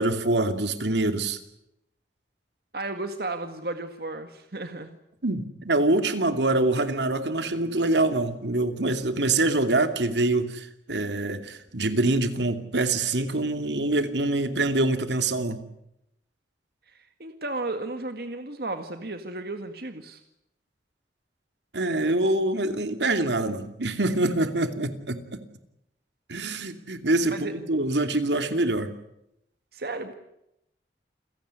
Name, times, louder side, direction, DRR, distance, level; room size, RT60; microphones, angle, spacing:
voice 1, 0.0-1.4 5.2-15.6 21.7-25.4 26.3-28.9, right 2 dB, 85° right, 8 dB, 2.7 m, -25 dB
voice 2, 2.7-5.0 16.9-20.2 27.3-27.5 29.7-30.1, right 2 dB, 60° right, 7 dB, 1.9 m, -34 dB
29.0 x 17.0 x 9.7 m, 0.81 s
head